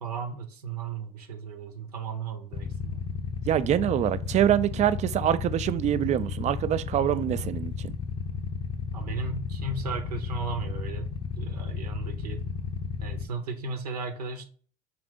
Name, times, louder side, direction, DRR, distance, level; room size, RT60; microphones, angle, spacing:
voice 1, 0.0-3.0 8.9-12.4 13.0-14.4, right 4 dB, 90° right, 0.7 m, -35 dB
Motorcycle / Idling, 2.5-13.2, left 6 dB, 30° left, 0.6 m, -33 dB
voice 2, 3.5-7.9, right 11 dB, 35° right, 0.4 m, -25 dB
4.9 x 2.6 x 3.5 m
hypercardioid pair, 70°, 19 cm